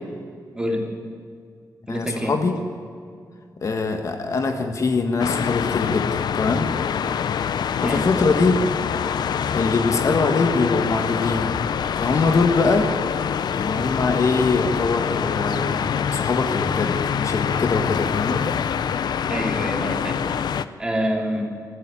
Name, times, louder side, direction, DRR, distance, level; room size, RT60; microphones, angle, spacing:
voice 1, 0.5-0.9 1.9-2.4 7.8-8.1 19.3-20.3 20.8-21.4, equal, 10° right, 1 dB, 3.1 m, -26 dB
voice 2, 1.9-2.5 3.6-6.7 7.8-8.6 9.5-11.6 12.0-12.9 13.5-15.9 16.1-18.5, left 4 dB, 45° left, 5 dB, 1.5 m, -22 dB
sound 1, 5.2-20.7, left 8 dB, 75° left, 0.7 m, -25 dB
25.5 x 14.5 x 9.9 m, 2.2 s
wide cardioid pair, 175°, 7 cm